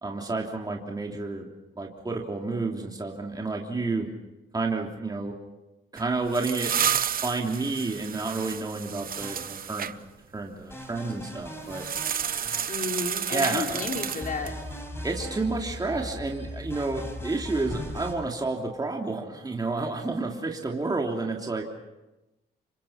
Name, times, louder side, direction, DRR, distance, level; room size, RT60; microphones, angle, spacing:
voice 1, 0.0-1.5 1.8-4.1 4.5-5.4 5.9-6.7 7.2-9.9 10.3-11.8 13.3-13.7 15.0-21.6, right 3 dB, 20° right, 0 dB, 3.2 m, -30 dB
sound 1, 6.0-9.9 11.7-14.6, right 8 dB, 45° right, 0.8 m, -31 dB
sound 2, 9.1-10.0 10.7-13.2 13.7-18.2, left 1 dB, 10° left, 5.8 m, -39 dB
voice 2, 12.7-14.5, left 4 dB, 45° left, 2 dB, 3.8 m, -32 dB
28.0 x 24.0 x 5.8 m, 0.99 s
cardioid pair, 90°, 20 cm